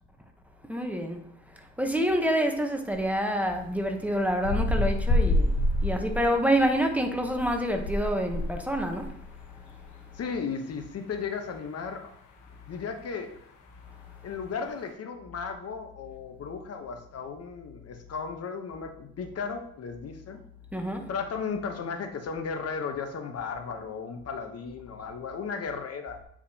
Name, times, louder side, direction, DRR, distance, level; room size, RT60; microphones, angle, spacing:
voice 1, 0.7-9.2 9.5-9.7 20.7-21.1, equal, 5° right, 0.9 m, -27 dB
sound 1, 2.9-3.0 4.1-6.6 7.2-9.1 9.4-9.5, left 1 dB, 80° left, 1.1 m, -27 dB
voice 2, 10.1-12.1 12.7-13.3 14.2-20.4 21.1-26.2, left 5 dB, 55° left, 0.9 m, -35 dB
8.6 x 4.8 x 2.8 m
cardioid pair, 90°, 30 cm